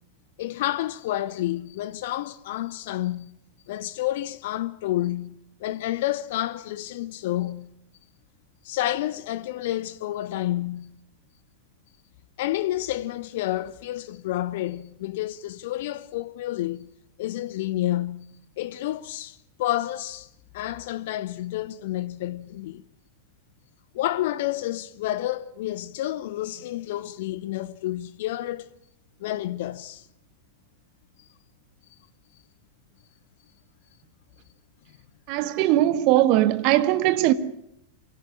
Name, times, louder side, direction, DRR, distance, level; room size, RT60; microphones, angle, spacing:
voice 1, 0.4-3.3 3.7-7.7 8.6-10.9 12.4-16.9 17.2-20.3 20.5-22.8 23.9-28.7 29.2-30.0, left 14 dB, 55° left, 0.9 m, -29 dB
voice 2, 35.3-37.3, right 14 dB, 45° right, 1.6 m, -20 dB
24.5 x 17.0 x 8.5 m
figure-of-eight pair, 90°, 0 cm